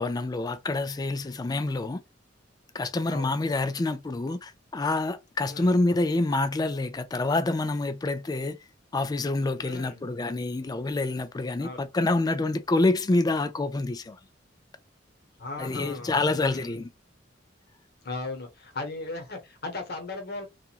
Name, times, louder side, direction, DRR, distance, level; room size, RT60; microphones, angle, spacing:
voice 1, 0.0-2.0 2.7-8.6 8.9-14.2 15.6-16.9, left 2 dB, 20° left, 0.3 m, -27 dB
voice 2, 5.5-5.8 9.6-10.1 11.6-11.8 15.4-16.8 18.0-20.5, left 3 dB, 55° left, 0.9 m, -37 dB
2.9 x 2.4 x 2.4 m
head